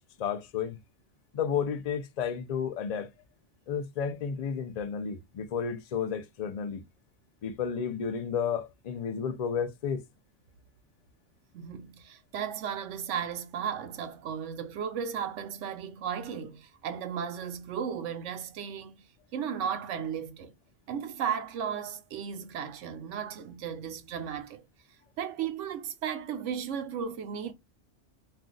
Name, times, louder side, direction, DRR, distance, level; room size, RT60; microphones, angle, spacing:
voice 1, 0.2-0.8 1.3-3.1 3.7-6.8 7.4-10.0, left 7 dB, 60° left, 0.4 m, -32 dB
voice 2, 11.5-19.1 19.3-20.5 20.9-24.6 25.2-27.5, right 8 dB, 85° right, 1.0 m, -35 dB
2.5 x 2.3 x 3.7 m
omnidirectional pair, 1.2 m